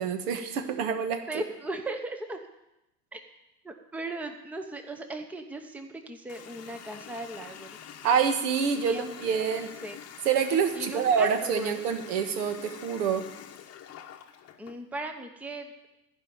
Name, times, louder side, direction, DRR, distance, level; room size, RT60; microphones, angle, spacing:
voice 1, 0.0-1.4 8.0-9.7 10.2-13.2, right 7 dB, 65° right, 7 dB, 1.6 m, -27 dB
voice 2, 1.3-2.4 3.1-3.2 3.6-7.7 8.8-9.2 9.6-10.0 10.7-11.8 14.6-15.7, right 2 dB, 5° right, 5 dB, 0.9 m, -37 dB
Water tap faucet, 6.3-14.8, left 9 dB, 30° left, 1.1 m, -46 dB
14.5 x 5.5 x 8.9 m, 0.91 s
hypercardioid pair, 110°, 48 cm